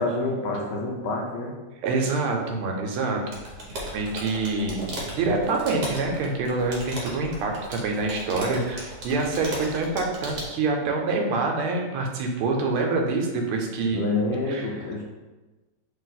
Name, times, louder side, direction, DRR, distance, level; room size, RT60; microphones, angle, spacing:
voice 1, 0.0-1.5 13.9-15.0, left 2 dB, 75° left, 0 dB, 1.4 m, -27 dB
voice 2, 1.8-3.4 3.6-14.1 14.5-14.7, right 3 dB, 90° right, 1 dB, 1.6 m, -26 dB
sound 1, 3.3-10.5, right 1 dB, 55° right, 1.3 m, -36 dB
3.6 x 2.7 x 4.0 m, 1.2 s
omnidirectional pair, 2.3 m